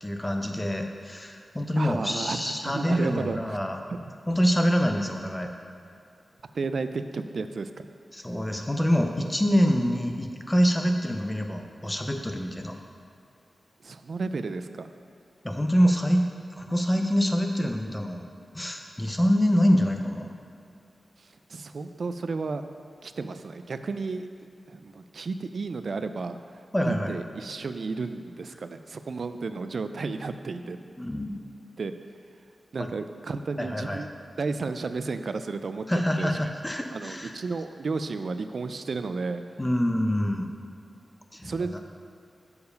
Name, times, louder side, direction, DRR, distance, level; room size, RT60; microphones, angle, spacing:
voice 1, 0.0-3.8 4.3-5.5 8.1-12.7 15.4-18.3 18.5-20.3 26.7-27.2 31.0-31.3 33.6-34.1 35.9-37.3 39.6-40.5 41.3-41.8, equal, 10° left, 4 dB, 0.6 m, -25 dB
voice 2, 1.8-3.6 3.9-4.0 6.5-7.7 13.8-14.9 21.2-22.6 23.0-24.3 24.7-26.5 26.8-30.8 31.8-31.9 32.7-34.1 34.4-35.9 36.2-36.4 36.9-39.4 41.4-41.8, right 4 dB, 65° right, 9 dB, 0.3 m, -32 dB
6.8 x 4.7 x 5.2 m, 2.4 s
wide cardioid pair, 100°, 0 cm